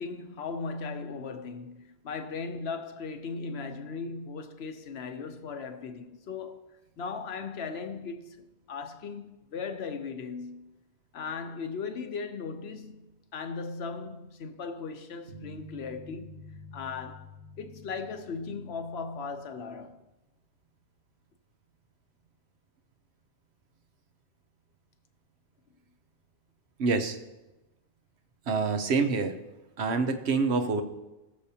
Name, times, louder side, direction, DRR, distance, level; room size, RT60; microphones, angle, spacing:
voice 1, 0.0-6.7 7.0-10.7 11.1-16.4 16.7-17.3 17.6-20.0, left 5 dB, 70° left, 1.0 m, -38 dB
sound 1, 15.3-19.5, left 1 dB, 90° right, 1.8 m, -49 dB
voice 2, 26.8-27.2 28.5-29.4 29.8-30.8, right 4 dB, 75° right, 1.0 m, -26 dB
19.5 x 6.7 x 2.8 m
omnidirectional pair, 1.1 m